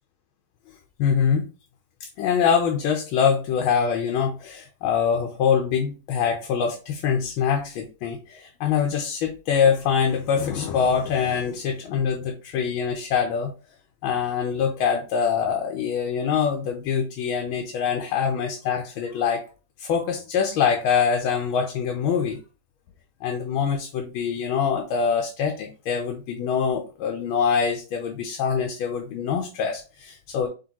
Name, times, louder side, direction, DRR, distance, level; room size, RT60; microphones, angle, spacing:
voice 1, 1.0-1.5 2.0-13.5 14.0-19.4 19.8-22.4 23.2-30.5, left 7 dB, 85° left, 3 dB, 1.5 m, -24 dB
5.2 x 3.1 x 2.9 m, 0.33 s
omnidirectional pair, 2.2 m